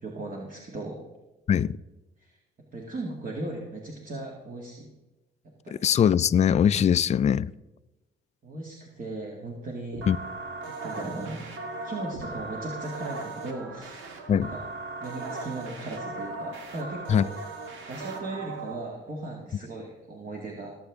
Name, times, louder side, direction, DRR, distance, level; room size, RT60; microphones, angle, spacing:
voice 1, 0.0-1.0 2.2-2.4 2.7-4.9 5.6-5.8 8.4-10.1 10.7-11.4 11.8-14.0 14.3-14.6 15.0-17.4 17.9-20.7, right 2 dB, 45° right, 2.0 m, -37 dB
voice 2, 5.8-7.5 10.1-10.2 14.3-14.5 17.1-17.2, left 8 dB, 35° left, 0.4 m, -21 dB
sound 1, 9.9-18.7, right 3 dB, 85° right, 1.8 m, -38 dB
17.5 x 7.9 x 3.6 m
cardioid pair, 90°, 20 cm